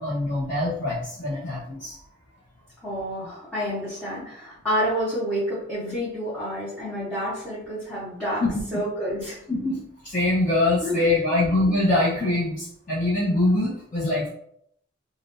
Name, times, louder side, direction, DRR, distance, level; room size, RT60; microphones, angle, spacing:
voice 1, 0.0-1.9 8.4-8.6 9.5-9.8 10.0-14.3, left 2 dB, 40° left, -10 dB, 0.9 m, -23 dB
voice 2, 2.8-8.4 8.7-9.4 10.8-11.5, equal, 5° left, -13 dB, 1.2 m, -29 dB
3.4 x 2.6 x 2.6 m, 0.69 s
head